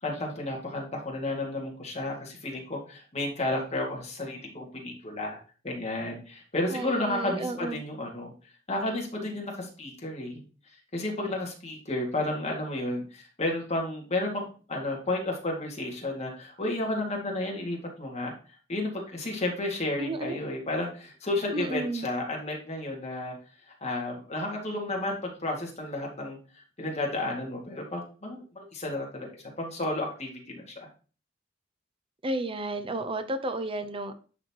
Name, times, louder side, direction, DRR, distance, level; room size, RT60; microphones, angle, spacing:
voice 1, 0.0-5.4 5.6-8.3 8.7-10.4 10.9-18.3 18.7-23.4 23.8-26.4 26.8-29.3 29.6-30.9, left 2 dB, 35° left, -1 dB, 2.1 m, -32 dB
voice 2, 6.7-7.8 20.0-20.4 21.5-22.1 32.2-34.2, right 2 dB, 30° right, 8 dB, 0.6 m, -32 dB
10.5 x 4.2 x 2.9 m, 0.37 s
head